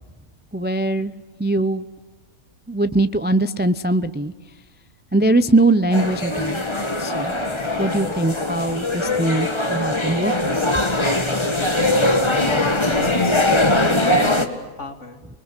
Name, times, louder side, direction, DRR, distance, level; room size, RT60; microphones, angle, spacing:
voice 1, 0.5-1.1 1.4-1.9 2.7-4.3 5.1-6.7 7.0-7.4 7.8-10.6, right 2 dB, 15° right, 12 dB, 0.3 m, -21 dB
sound 1, 5.9-14.5, left 1 dB, 20° left, 1.8 m, -21 dB
voice 2, 12.6-14.5 14.8-15.2, left 3 dB, 55° left, 6 dB, 2.8 m, -35 dB
29.5 x 21.0 x 8.2 m, 1.2 s
omnidirectional pair, 1.6 m